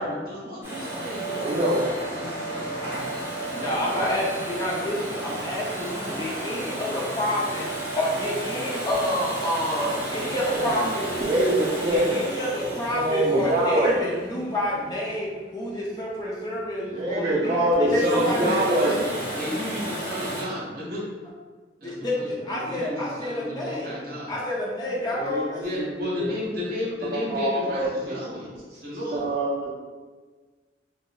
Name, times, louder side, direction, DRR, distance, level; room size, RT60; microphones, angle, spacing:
voice 1, 0.0-3.6 4.9-5.1 18.0-21.0 21.8-24.3 25.6-28.5 28.8-29.3, left 1 dB, 55° right, -6 dB, 0.9 m, -33 dB
Domestic sounds home sounds, 0.6-15.4 17.7-20.4, right 1 dB, 15° right, 0.8 m, -33 dB
voice 2, 1.4-1.9 10.3-10.7 11.3-12.2 12.9-14.0 16.9-19.0 25.1-25.9 26.1-26.3 27.1-28.2 29.1-29.7, right 1 dB, 35° right, -7 dB, 0.4 m, -24 dB
voice 3, 3.5-11.1 11.9-18.7 21.8-24.0 24.3-25.6, left 1 dB, 20° left, -5 dB, 0.4 m, -29 dB
3.8 x 2.0 x 2.2 m, 1.4 s
head